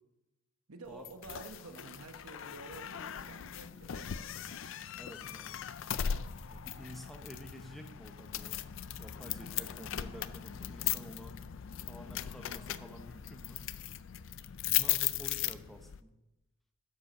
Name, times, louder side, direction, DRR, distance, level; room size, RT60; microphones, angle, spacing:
voice 1, 0.7-4.6, right 3 dB, 80° right, 7 dB, 1.0 m, -50 dB
sound 1, 1.0-16.0, left 11 dB, 60° left, 0.4 m, -38 dB
voice 2, 4.9-5.6 6.5-8.6 9.0-11.4 11.9-13.6 14.7-16.1, equal, ahead, 4 dB, 0.8 m, -50 dB
11.5 x 5.2 x 6.7 m, 0.98 s
head